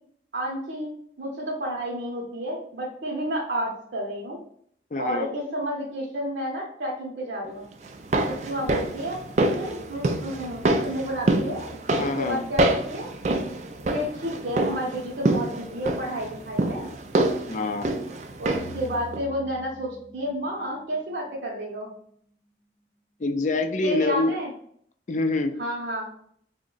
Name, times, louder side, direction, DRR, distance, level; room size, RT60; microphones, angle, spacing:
voice 1, 0.3-4.4 5.0-7.7 8.3-9.2 9.5-13.1 13.9-16.9 18.4-21.9 23.8-24.5 25.6-26.1, equal, 65° right, -4 dB, 0.7 m, -31 dB
voice 2, 4.9-5.3 11.9-12.4 17.5-17.9 23.2-24.3 25.1-25.5, left 2 dB, 40° left, 7 dB, 0.4 m, -25 dB
sound 1, 7.8-18.9 19.1-19.2, right 2 dB, 40° right, 0.3 m, -27 dB
sound 2, 18.5-21.8, left 3 dB, 65° left, 0.7 m, -44 dB
3.5 x 2.1 x 3.8 m, 0.64 s
head